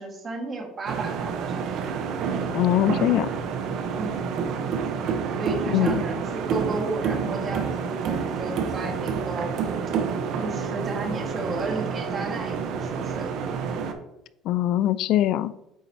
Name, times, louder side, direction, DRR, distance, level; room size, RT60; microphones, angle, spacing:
voice 1, 0.0-1.6 3.9-4.4 5.4-9.5 10.4-13.3, right 3 dB, 35° right, 2 dB, 1.4 m, -33 dB
sound 1, 0.9-13.9, right 6 dB, 60° right, 0.7 m, -28 dB
voice 2, 2.5-3.3 5.7-6.0 14.5-15.5, left 13 dB, 65° left, 16 dB, 0.3 m, -22 dB
8.4 x 4.1 x 2.7 m, 0.86 s
cardioid pair, 115°, 0 cm